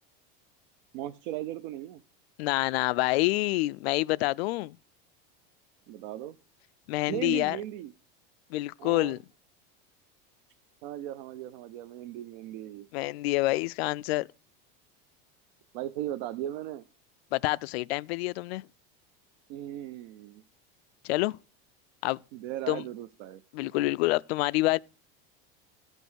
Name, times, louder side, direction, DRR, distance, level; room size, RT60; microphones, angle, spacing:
voice 1, 0.9-2.0 5.9-6.4 7.1-7.9 8.8-9.2 10.8-12.9 15.7-16.9 19.5-20.4 22.3-23.4, right 13 dB, 60° right, 0.6 m, -37 dB
voice 2, 2.4-4.8 6.9-7.6 8.5-9.2 12.9-14.3 17.3-18.7 21.0-21.4 22.0-22.2 22.7-22.8 23.5-24.8, left 20 dB, 90° left, 0.5 m, -27 dB
13.5 x 5.3 x 6.3 m
supercardioid pair, 170°, 30 cm